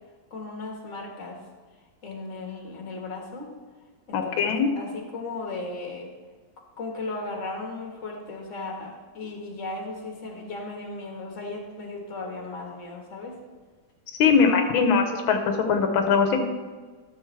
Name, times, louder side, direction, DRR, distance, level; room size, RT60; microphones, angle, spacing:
voice 1, 0.3-1.4 2.0-3.5 4.1-6.1 6.8-13.4, left 3 dB, 40° left, 1 dB, 1.8 m, -36 dB
voice 2, 4.1-4.7 14.2-15.4 15.7-16.4, left 5 dB, 90° left, 5 dB, 1.6 m, -21 dB
12.5 x 7.0 x 3.3 m, 1.4 s
omnidirectional pair, 2.1 m